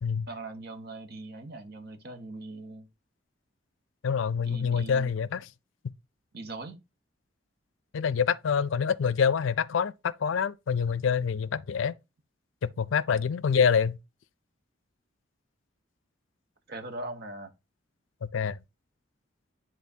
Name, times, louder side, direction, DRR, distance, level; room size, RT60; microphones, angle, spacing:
voice 1, 0.3-2.9 4.4-5.1 6.3-6.8 16.7-17.5, right 2 dB, 55° right, 1.1 m, -40 dB
voice 2, 4.0-5.5 7.9-11.9 12.6-14.0 18.2-18.6, left 6 dB, 80° left, 0.4 m, -26 dB
10.5 x 3.8 x 2.7 m
head